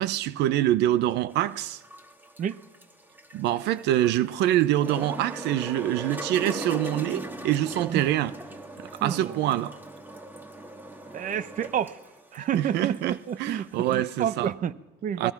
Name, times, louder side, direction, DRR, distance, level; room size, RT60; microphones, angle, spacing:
voice 1, 0.0-1.8 3.3-8.3 9.0-9.8 12.5-14.5 15.2-15.3, right 13 dB, 85° right, 0.8 m, -25 dB
sound 1, 1.3-14.4, right 1 dB, 10° right, 2.4 m, -40 dB
voice 2, 9.0-9.6 11.1-12.0 12.3-15.3, right 9 dB, 50° right, 0.9 m, -30 dB
29.5 x 21.0 x 5.9 m
cardioid pair, 110°, 17 cm